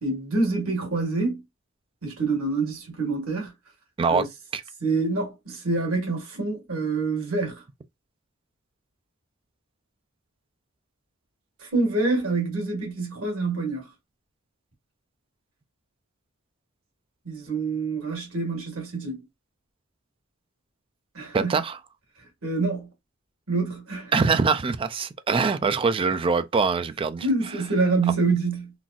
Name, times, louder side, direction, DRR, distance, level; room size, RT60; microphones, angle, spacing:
voice 1, 0.0-1.4 2.0-3.5 4.1-4.3 4.8-7.6 11.6-13.8 17.3-19.2 21.2-21.6 22.4-22.9 23.5-24.3 27.2-28.7, right 3 dB, 85° right, 1.7 m, -26 dB
voice 2, 21.3-21.8 24.1-27.3, right 5 dB, 25° right, 0.3 m, -23 dB
3.8 x 2.4 x 2.3 m
head